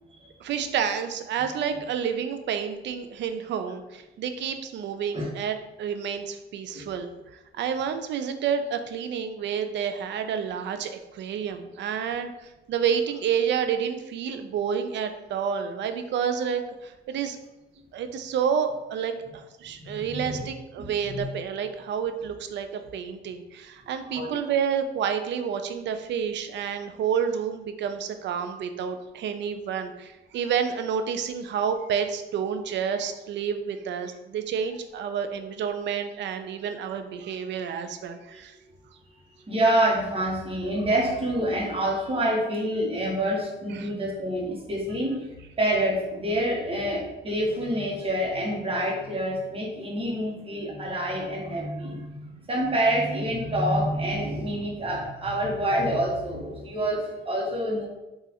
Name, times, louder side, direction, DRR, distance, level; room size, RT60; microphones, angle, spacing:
voice 1, 0.4-17.4 17.9-38.6 43.7-43.9, right 7 dB, 65° right, 8 dB, 0.4 m, -29 dB
voice 2, 19.8-20.4 20.8-21.3 23.8-24.4 38.3-38.4 38.7-38.8 39.5-45.3 45.6-57.9, right 1 dB, 30° right, -2 dB, 1.0 m, -27 dB
3.9 x 2.5 x 2.8 m, 1.0 s
cardioid pair, 90°, 20 cm